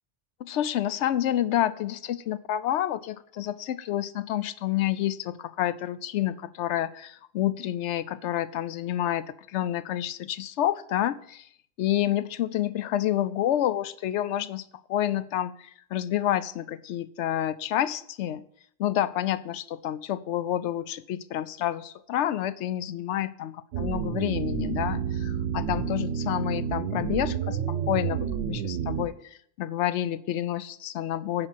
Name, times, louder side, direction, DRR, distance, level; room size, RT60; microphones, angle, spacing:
voice 1, 0.4-11.5 11.8-18.4 18.8-29.2 29.6-31.5, left 12 dB, 80° left, 16 dB, 0.9 m, -29 dB
sound 1, 23.7-29.1, right 7 dB, 75° right, 1.0 m, -30 dB
10.5 x 4.9 x 7.4 m, 0.66 s
omnidirectional pair, 1.2 m